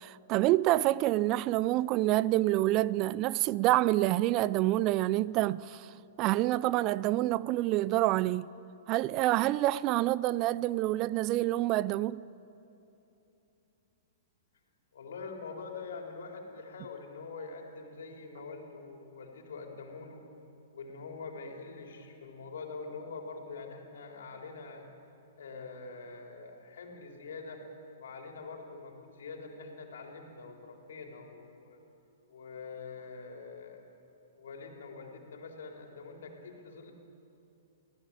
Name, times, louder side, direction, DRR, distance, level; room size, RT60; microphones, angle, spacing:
voice 1, 0.0-5.9 6.2-8.5 8.9-12.2, right 16 dB, 35° right, 0.4 m, -27 dB
voice 2, 14.9-20.2 20.7-24.9 25.3-27.6 28.0-31.8 32.3-33.8 34.3-36.9, left 4 dB, 65° left, 3.9 m, -44 dB
24.5 x 16.5 x 8.7 m
figure-of-eight pair, 110°, 0 cm